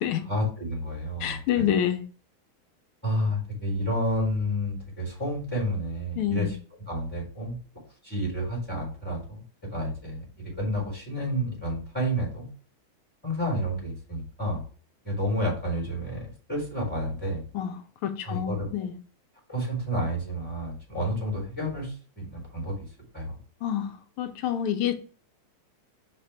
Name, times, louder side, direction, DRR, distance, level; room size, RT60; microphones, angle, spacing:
voice 1, 0.2-1.6 3.0-6.6 6.9-7.6 8.0-9.4 9.7-12.5 13.2-14.6 15.0-17.4 18.2-18.7 19.5-22.8 23.1-23.4, equal, 5° left, 3.8 m, -30 dB
voice 2, 1.2-2.0 6.2-6.5 17.5-17.7 18.0-18.9 23.6-23.9 24.2-24.9, left 10 dB, 85° left, 1.6 m, -27 dB
5.7 x 4.4 x 5.0 m
omnidirectional pair, 2.3 m